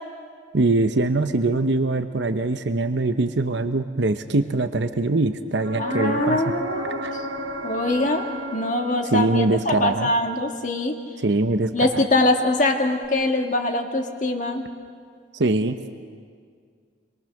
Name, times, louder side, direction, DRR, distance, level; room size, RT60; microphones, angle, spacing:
voice 1, 0.5-6.4 7.0-7.1 9.1-10.1 11.2-12.0 15.3-15.8, right 2 dB, 75° right, 9 dB, 0.9 m, -22 dB
sound 1, 5.6-9.4 13.0-13.1, right 1 dB, 90° right, 2.0 m, -32 dB
voice 2, 5.8-7.3 7.6-10.9 11.7-14.6, left 2 dB, 40° left, 4 dB, 1.8 m, -23 dB
26.5 x 22.5 x 6.6 m, 2.1 s
head